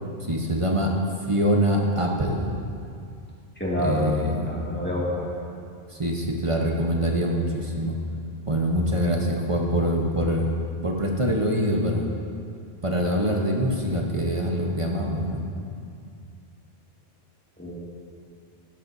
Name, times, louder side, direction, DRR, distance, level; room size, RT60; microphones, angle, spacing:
voice 1, 0.3-0.9 1.3-2.5 3.8-4.5 5.9-8.0 8.5-10.5 10.8-12.1 12.8-15.4, equal, 30° right, 0 dB, 1.1 m, -24 dB
voice 2, 3.6-4.1 4.4-5.3 17.6-17.7, left 1 dB, 10° left, -7 dB, 2.1 m, -27 dB
16.0 x 11.0 x 2.7 m, 2.4 s
omnidirectional pair, 1.1 m